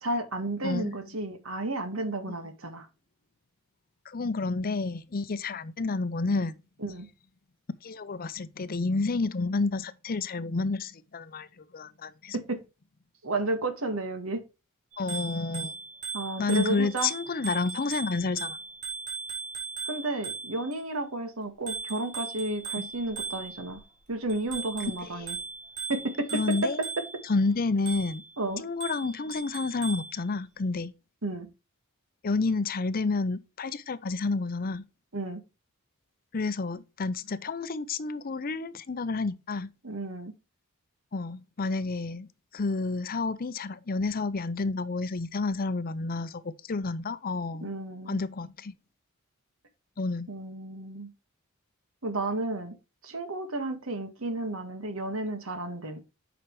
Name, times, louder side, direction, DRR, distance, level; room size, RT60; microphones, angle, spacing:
voice 1, 0.0-2.9 6.8-7.1 12.3-12.6 13.2-14.4 16.1-17.1 19.9-23.8 24.1-25.4 25.9-26.6 28.4-28.6 31.2-31.5 35.1-35.4 39.8-40.4 47.6-48.2 50.3-51.1 52.0-52.7 53.0-56.0, right 2 dB, 75° right, 1.7 m, -32 dB
voice 2, 0.6-0.9 4.1-6.6 7.8-12.4 15.0-15.8 16.4-18.6 22.8-22.9 25.0-25.3 26.3-26.8 27.2-28.2 28.6-30.9 32.2-34.8 36.3-39.7 41.1-47.7 48.1-48.7 50.0-50.3, left 3 dB, 45° left, 0.6 m, -30 dB
Bicycle bell, 14.9-20.8 21.7-23.8 24.3-27.3 27.9-28.3 28.8-30.1, right 5 dB, 35° right, 4.5 m, -38 dB
8.7 x 6.0 x 3.2 m
head